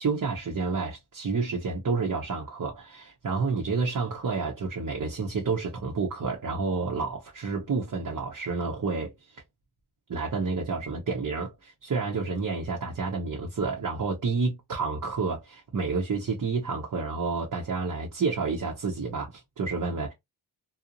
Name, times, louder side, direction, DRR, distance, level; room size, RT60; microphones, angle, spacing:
voice 1, 0.0-9.1 10.1-20.1, right 4 dB, 40° right, 0.7 m, -29 dB
2.6 x 2.0 x 2.8 m
cardioid pair, 55°, 48 cm